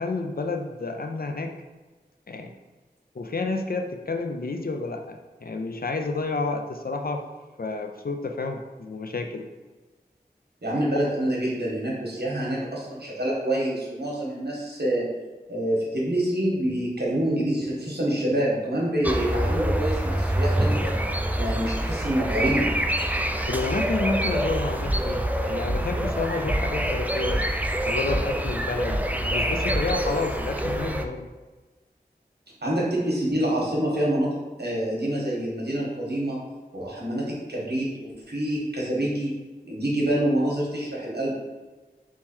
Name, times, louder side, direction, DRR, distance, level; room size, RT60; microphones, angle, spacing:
voice 1, 0.0-1.5 2.3-2.5 3.1-7.2 7.6-9.5 11.2-11.3 23.5-27.4 27.9-31.3, left 3 dB, 60° left, 4 dB, 0.5 m, -30 dB
voice 2, 10.6-15.1 15.5-21.0 21.4-22.7 32.6-36.4 36.7-39.3 39.6-41.3, right 1 dB, 75° right, -5 dB, 1.3 m, -26 dB
sound 1, 19.0-31.1, right 1 dB, 10° right, 0.3 m, -26 dB
sound 2, 24.8-25.3 25.6-26.1 26.5-26.9 27.3-27.7 28.1-28.5 28.9-29.3 29.7-29.9, equal, 20° left, 1.1 m, -28 dB
3.7 x 3.0 x 4.4 m, 1.2 s
wide cardioid pair, 40°, 17 cm